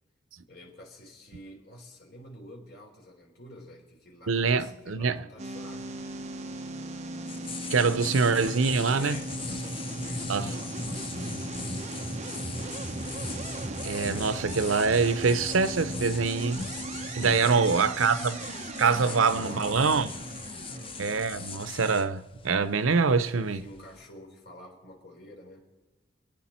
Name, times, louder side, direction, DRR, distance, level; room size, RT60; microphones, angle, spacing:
voice 1, 0.5-6.0 8.9-12.8 17.4-17.9 19.1-20.2 20.6-21.0 23.5-25.7, left 1 dB, 55° left, 3.7 m, -49 dB
voice 2, 4.3-5.2 7.7-9.2 10.3-10.6 13.8-16.6 17.1-18.5 18.8-20.1 21.0-23.6, right 4 dB, 90° right, 0.7 m, -25 dB
sound 1, 5.4-21.7, right 2 dB, 35° right, 1.0 m, -37 dB
sound 2, 5.6-24.1, left 5 dB, 30° left, 0.7 m, -41 dB
26.0 x 9.3 x 4.4 m
head